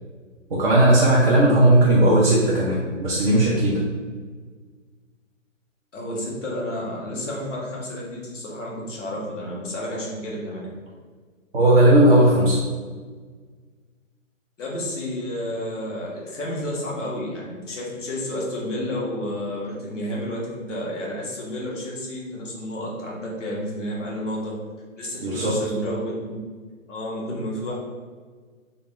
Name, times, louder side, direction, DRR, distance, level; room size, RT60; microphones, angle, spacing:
voice 1, 0.5-3.8 11.5-12.6 25.2-25.9, right 1 dB, 45° right, -6 dB, 0.7 m, -17 dB
voice 2, 5.9-10.6 14.6-24.6 25.0-26.4 26.9-27.7, left 1 dB, 5° left, -4 dB, 0.4 m, -31 dB
3.5 x 2.4 x 3.6 m, 1.5 s
hypercardioid pair, 155°, 40 cm